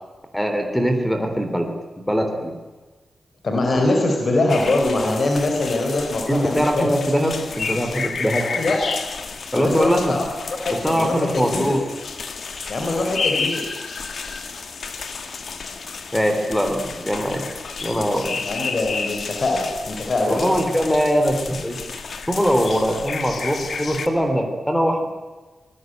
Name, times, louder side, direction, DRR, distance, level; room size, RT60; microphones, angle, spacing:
voice 1, 0.3-2.6 3.7-3.8 6.3-8.5 9.5-10.2 10.7-11.9 16.1-17.5 17.8-18.4 20.3-21.8 22.3-25.1, equal, 5° left, 6 dB, 3.5 m, -22 dB
voice 2, 3.4-6.9 8.4-9.0 9.5-11.8 12.7-13.6 18.4-20.6, left 2 dB, 45° left, 2 dB, 4.5 m, -23 dB
sound 1, 4.5-24.1, left 5 dB, 60° left, 2.2 m, -31 dB
25.5 x 20.5 x 9.2 m, 1.3 s
wide cardioid pair, 160°, 0 cm